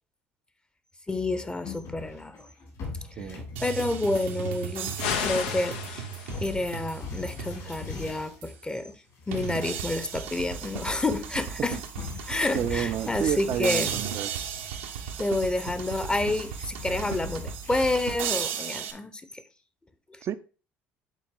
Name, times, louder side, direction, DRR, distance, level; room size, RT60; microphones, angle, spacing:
voice 1, 1.1-2.5 3.2-4.9 5.2-6.1 6.4-9.0 9.3-11.8 12.3-13.9 15.2-19.2, left 2 dB, 15° left, 0.8 m, -29 dB
sound 1, 1.6-8.6 9.1-10.4 10.7-10.8 12.0-14.2 14.5-15.1 15.6-18.1, left 3 dB, 65° left, 3.5 m, -42 dB
voice 2, 3.2-3.5 11.7-11.8 12.5-14.3 20.2-20.3, right 10 dB, 50° right, 0.5 m, -30 dB
sound 2, 3.6-8.0 8.4-8.5 9.3-18.9, right 7 dB, 85° right, 1.0 m, -35 dB
sound 3, 5.0-6.6, left 7 dB, 85° left, 0.7 m, -32 dB
8.3 x 4.0 x 3.8 m
hypercardioid pair, 70°, 6 cm